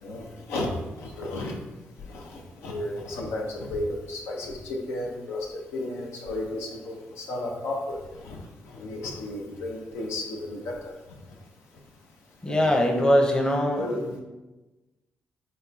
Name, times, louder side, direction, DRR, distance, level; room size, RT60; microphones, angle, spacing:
voice 1, 0.0-0.7 1.0-1.5 2.0-8.4 8.7-10.9 12.5-12.8 13.8-14.0, left 2 dB, 85° left, -1 dB, 0.7 m, -33 dB
voice 2, 12.4-14.2, equal, 20° left, 1 dB, 0.7 m, -22 dB
4.2 x 2.3 x 4.0 m, 1.1 s
supercardioid pair, 65°, 4 cm